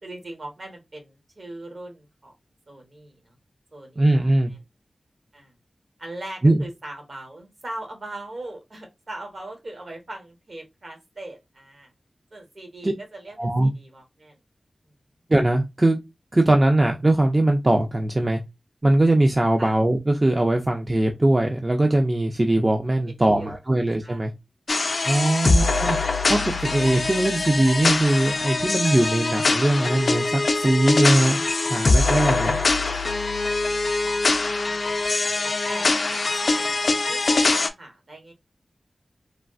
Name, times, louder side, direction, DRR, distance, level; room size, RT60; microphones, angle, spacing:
voice 1, 0.0-2.3 2.7-3.3 3.7-4.3 5.3-5.5 6.0-11.9 12.3-14.4 19.6-19.7 23.3-23.6 24.0-24.2 25.3-25.7 33.7-35.0 35.3-38.3, right 1 dB, 55° right, 1.1 m, -40 dB
voice 2, 4.0-4.5 6.4-6.6 12.8-12.9 13.4-13.7 15.3-16.0 16.3-18.4 18.8-24.3 25.1-26.0 26.3-32.6, right 1 dB, 25° right, 0.4 m, -21 dB
sound 1, 24.7-37.7, left 3 dB, 55° left, 0.3 m, -23 dB
3.2 x 2.3 x 2.5 m
wide cardioid pair, 95°, 0 cm